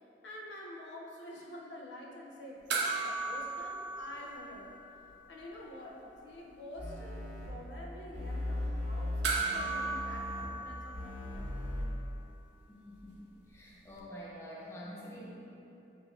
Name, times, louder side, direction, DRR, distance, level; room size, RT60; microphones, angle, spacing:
voice 1, 0.2-4.7 5.3-11.5, left 1 dB, 70° left, -2 dB, 0.5 m, -48 dB
sound 1, 2.7-5.4 5.6-5.7 9.2-11.8 14.0-14.1, right 4 dB, 75° right, 0.5 m, -36 dB
sound 2, 6.8-7.5 8.1-10.4 10.9-11.8, left 1 dB, 60° right, 1.4 m, -38 dB
voice 2, 12.7-15.5, equal, 15° left, -6 dB, 0.5 m, -47 dB
4.8 x 2.5 x 3.1 m, 3.0 s
head